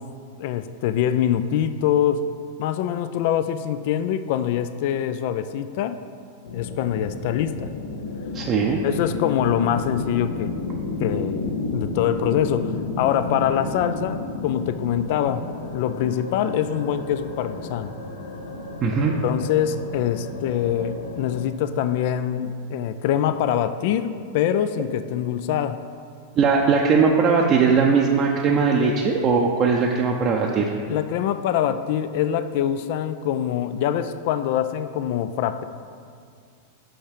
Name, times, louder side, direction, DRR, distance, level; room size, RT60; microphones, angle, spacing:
voice 1, 0.4-2.2 2.6-6.0 6.5-7.7 8.8-10.6 11.0-15.5 15.7-17.9 19.2-25.8 30.9-35.6, left 10 dB, 55° left, 11 dB, 0.3 m, -24 dB
sound 1, 6.4-21.5, left 3 dB, 75° left, 0.9 m, -32 dB
voice 2, 8.3-8.8 18.8-19.1 26.4-30.7, right 5 dB, 35° right, -1 dB, 0.6 m, -19 dB
5.6 x 5.4 x 5.1 m, 2.2 s
hypercardioid pair, 105°, 0 cm